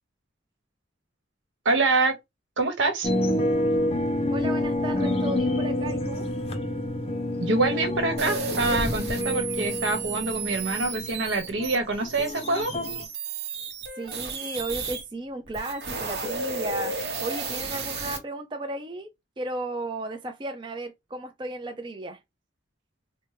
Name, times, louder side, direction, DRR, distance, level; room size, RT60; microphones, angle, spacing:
voice 1, 1.6-2.2 2.6-3.1 7.4-12.7, right 3 dB, 80° right, 1.1 m, -25 dB
sound 1, 3.0-13.0, left 1 dB, 30° left, 0.5 m, -28 dB
voice 2, 4.3-6.3 14.0-19.1 19.4-22.2, right 2 dB, 25° right, 0.4 m, -34 dB
sound 2, 8.2-15.0 15.5-18.2, right 4 dB, 60° right, 0.9 m, -33 dB
4.4 x 2.1 x 3.2 m
head